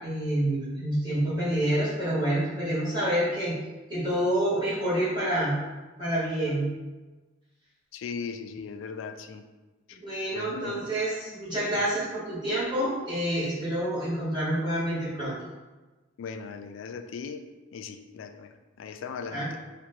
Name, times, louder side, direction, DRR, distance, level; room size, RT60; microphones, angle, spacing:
voice 1, 0.0-3.5 3.9-5.5 6.0-6.7 10.0-15.3 19.3-19.5, right 1 dB, 25° right, -11 dB, 1.4 m, -28 dB
voice 2, 7.9-9.4 9.9-10.0 10.3-10.9 16.2-17.4 17.7-19.6, left 5 dB, 70° left, 8 dB, 0.3 m, -38 dB
3.0 x 2.5 x 4.3 m, 1.2 s
head